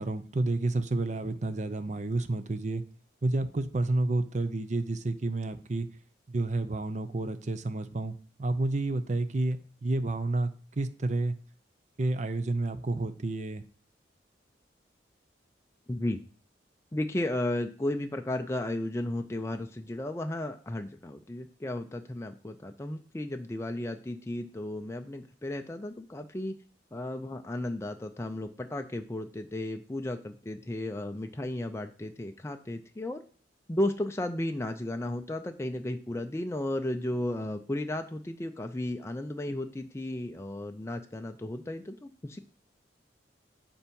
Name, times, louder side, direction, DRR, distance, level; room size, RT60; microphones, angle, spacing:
voice 1, 0.0-2.8 3.2-5.9 6.3-11.4 12.0-13.6, right 2 dB, 40° right, 11 dB, 0.5 m, -30 dB
voice 2, 15.9-16.2 16.9-26.5 26.9-33.2 33.7-42.4, left 1 dB, 15° left, 6 dB, 0.4 m, -34 dB
7.1 x 4.5 x 5.3 m, 0.41 s
head